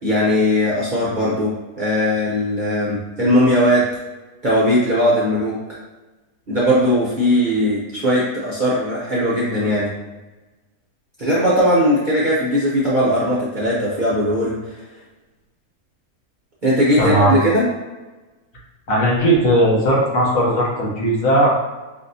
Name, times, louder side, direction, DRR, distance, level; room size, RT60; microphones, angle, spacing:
voice 1, 0.0-1.5 1.8-3.9 4.4-5.6 6.5-9.9 11.2-14.6 16.6-17.7, equal, 45° right, -7 dB, 0.7 m, -18 dB
voice 2, 17.0-17.4 18.9-21.5, right 1 dB, 60° left, -4 dB, 1.2 m, -17 dB
5.4 x 2.7 x 2.6 m, 1.1 s
omnidirectional pair, 1.7 m